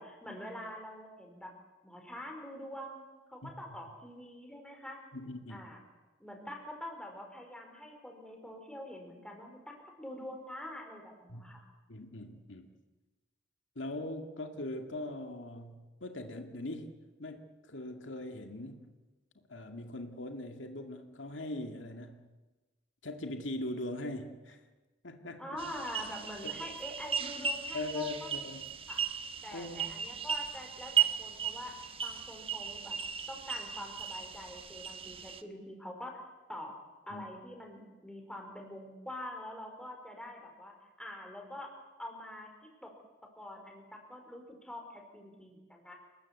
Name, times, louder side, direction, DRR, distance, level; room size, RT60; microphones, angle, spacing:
voice 1, 0.0-1.5 1.8-3.0 3.3-5.0 5.5-5.8 6.2-11.6 25.4-28.4 28.9-29.0 29.4-33.0 33.3-36.2 36.5-36.7 37.1-41.7 42.0-42.5 42.8-42.9 43.4-45.9, left 1 dB, 5° left, 2 dB, 4.9 m, -45 dB
voice 2, 5.1-5.7 11.3-11.6 11.9-12.7 13.8-18.9 19.4-22.3 23.0-24.6 25.0-25.4 26.4-26.6 27.7-28.7 29.5-29.9 37.1-37.2, left 2 dB, 85° left, 5 dB, 2.2 m, -41 dB
sound 1, 25.6-35.4, right 8 dB, 30° right, 1.2 m, -36 dB
28.5 x 20.5 x 8.3 m, 1.2 s
head